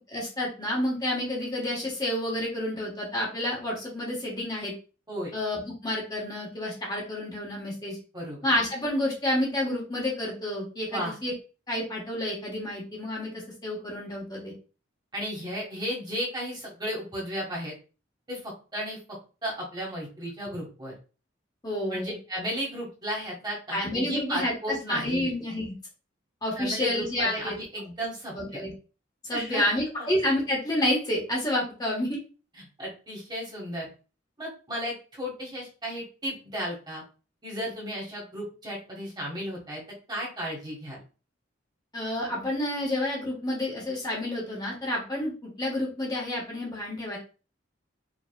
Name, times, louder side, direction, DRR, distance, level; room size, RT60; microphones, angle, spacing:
voice 1, 0.1-4.7 5.3-8.0 8.4-11.3 11.7-14.5 21.6-22.1 23.7-25.7 26.4-27.6 28.3-28.7 29.2-32.2 41.9-47.2, left 1 dB, 20° left, -4 dB, 1.3 m, -29 dB
voice 2, 15.1-17.7 18.3-20.9 21.9-25.3 26.6-28.6 29.3-29.7 30.0-30.1 32.6-33.9 34.4-37.0 37.4-39.8 40.1-41.0, equal, 20° right, -3 dB, 1.6 m, -34 dB
4.9 x 3.2 x 2.3 m, 0.34 s
head